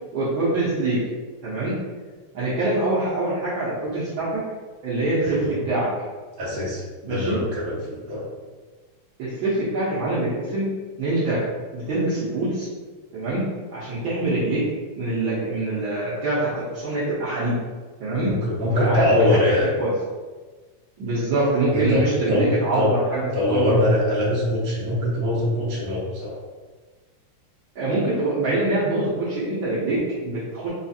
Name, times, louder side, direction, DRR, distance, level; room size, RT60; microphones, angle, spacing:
voice 1, 0.1-1.0 1.4-1.8 2.3-4.4 4.8-5.9 7.0-7.4 9.2-10.7 11.0-11.4 11.7-12.7 13.1-14.6 15.0-17.6 18.0-18.3 18.7-19.9 21.0-23.7 27.7-30.7, right 2 dB, 85° right, -10 dB, 1.0 m, -24 dB
voice 2, 5.2-5.5 6.4-8.3 18.2-19.7 21.7-22.0 22.3-22.5 22.7-22.9 23.3-26.4, left 1 dB, 60° right, -7 dB, 0.9 m, -23 dB
6.0 x 2.5 x 2.7 m, 1.4 s
omnidirectional pair, 3.5 m